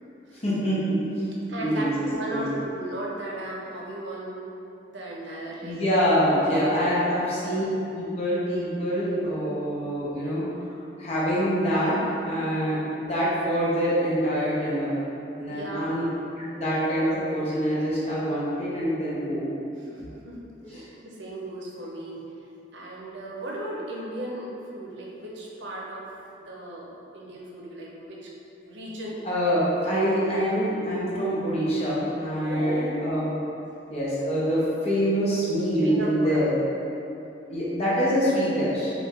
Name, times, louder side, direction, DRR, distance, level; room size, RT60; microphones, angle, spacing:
voice 1, 0.4-1.3 1.6-1.9 2.3-2.4 5.6-7.6 7.9-10.4 10.7-14.9 15.4-16.0 16.4-19.5 20.7-20.8 29.2-33.3 33.9-36.5 37.5-38.9, equal, 35° left, -8 dB, 0.8 m, -25 dB
voice 2, 1.5-4.4 4.9-5.8 6.5-6.8 15.4-15.9 19.8-20.4 20.7-22.2 22.7-26.1 26.4-28.3 28.6-29.2 29.8-30.0 32.5-33.1 35.8-36.4, right 1 dB, 80° right, -4 dB, 0.6 m, -36 dB
3.1 x 2.6 x 3.5 m, 2.8 s
head